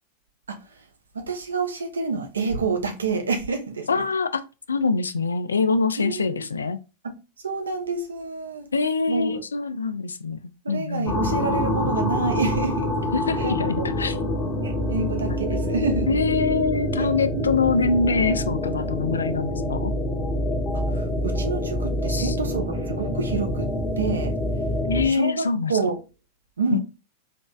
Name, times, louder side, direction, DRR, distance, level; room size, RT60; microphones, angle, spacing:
voice 1, 1.1-4.0 6.0-6.5 7.4-8.7 9.1-9.4 10.6-12.9 13.4-13.9 14.6-16.2 17.4-17.6 20.9-23.7 24.0-24.3 25.0-26.0 26.6-26.8, right 4 dB, 75° right, 0.8 m, -28 dB
voice 2, 3.9-4.3 4.7-6.8 8.7-10.4 10.7-11.1 13.1-14.2 15.0-15.4 16.1-19.9 22.1-22.4 24.8-25.7 26.7-26.8, left 4 dB, 75° left, 0.3 m, -24 dB
sound 1, 11.1-25.1, left 1 dB, 35° left, 0.8 m, -26 dB
4.2 x 3.1 x 2.3 m
figure-of-eight pair, 90°, 0 cm